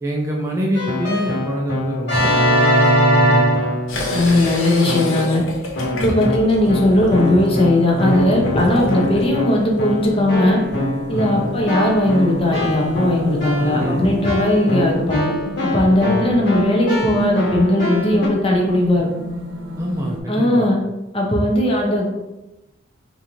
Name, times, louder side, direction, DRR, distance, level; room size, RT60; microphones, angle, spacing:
voice 1, 0.0-3.4 6.0-6.3 11.1-11.5 13.6-14.0 16.0-16.3 19.8-20.7, equal, 15° right, -2 dB, 0.4 m, -26 dB
Keyboard (musical), 0.7-4.4 4.9-5.4 5.7-18.3, equal, 60° left, 1.4 m, -22 dB
sound 1, 3.9-9.2, left 2 dB, 85° left, 0.6 m, -28 dB
voice 2, 4.1-5.4 5.9-10.6 11.1-15.3 15.6-19.1 20.3-20.8 21.1-22.2, left 1 dB, 30° left, -1 dB, 0.6 m, -18 dB
sound 2, 6.5-20.2, right 1 dB, 65° right, 0.6 m, -31 dB
3.5 x 2.6 x 3.0 m, 0.96 s
head